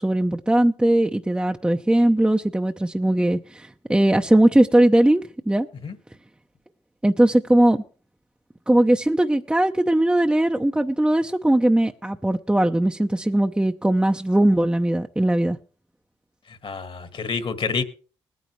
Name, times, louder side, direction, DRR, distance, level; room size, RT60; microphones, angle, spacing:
voice 1, 0.0-5.7 7.0-7.8 8.7-15.6, right 1 dB, 10° right, 4 dB, 0.7 m, -19 dB
voice 2, 16.5-17.8, left 5 dB, 50° left, 10 dB, 1.8 m, -28 dB
20.5 x 9.4 x 3.2 m, 0.39 s
supercardioid pair, 50°, 11 cm